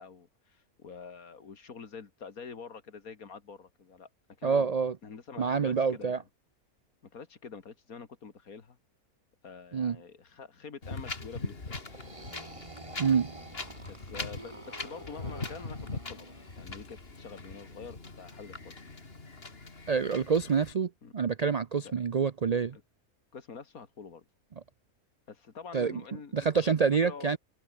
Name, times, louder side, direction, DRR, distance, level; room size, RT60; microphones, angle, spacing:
voice 1, 0.0-4.1 4.4-4.8 5.0-6.2 7.0-8.8 9.4-12.0 13.9-18.8 21.0-21.1 21.8-21.9 22.7-22.8 23.3-24.2 25.3-26.8 27.0-27.4, left 5 dB, 70° left, 2.5 m, -46 dB
voice 2, 4.4-5.0 5.4-6.2 9.7-10.0 13.0-13.3 19.9-22.8 25.7-26.0 26.3-27.4, right 6 dB, 70° right, 0.3 m, -27 dB
Wind, 10.8-20.7, left 3 dB, 40° left, 2.8 m, -41 dB
sound 1, 11.8-16.6, right 2 dB, 20° right, 2.5 m, -48 dB
omnidirectional pair, 1.6 m